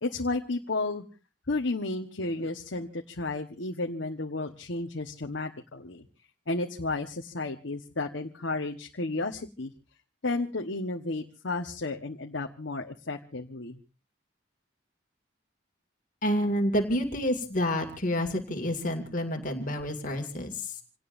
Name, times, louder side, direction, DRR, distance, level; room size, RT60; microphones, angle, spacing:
voice 1, 0.0-1.0 1.5-6.0 6.5-9.7 10.2-13.8, left 2 dB, 75° left, 3 dB, 1.3 m, -32 dB
voice 2, 16.2-20.7, equal, 45° left, 4 dB, 2.3 m, -29 dB
28.0 x 18.5 x 2.6 m, 0.33 s
head